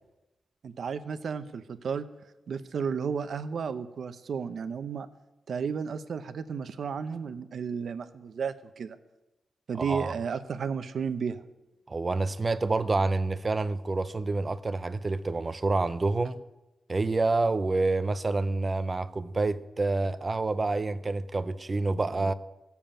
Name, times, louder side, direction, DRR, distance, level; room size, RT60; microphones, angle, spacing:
voice 1, 0.6-2.0 2.5-5.1 5.5-9.0 9.7-11.4, right 6 dB, 55° right, 0.8 m, -33 dB
voice 2, 9.8-10.1 11.9-16.4 16.9-22.3, right 3 dB, 25° right, 0.5 m, -28 dB
15.0 x 7.1 x 8.9 m
wide cardioid pair, 180°, 0 cm